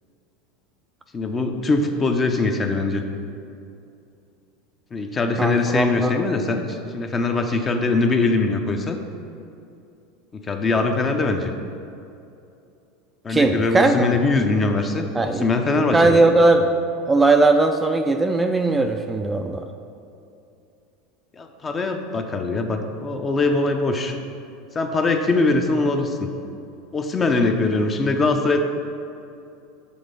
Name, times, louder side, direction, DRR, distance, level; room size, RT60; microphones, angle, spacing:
voice 1, 1.1-3.0 4.9-9.0 10.3-11.5 13.2-16.2 21.4-24.2 24.7-26.3 26.9-28.6, left 3 dB, 25° left, 5 dB, 0.6 m, -22 dB
voice 2, 5.4-6.1 13.3-13.9 15.1-15.5 15.9-16.7 17.1-19.6, right 3 dB, 15° right, 5 dB, 0.3 m, -18 dB
7.0 x 3.7 x 5.1 m, 2.6 s
hypercardioid pair, 95°, 0 cm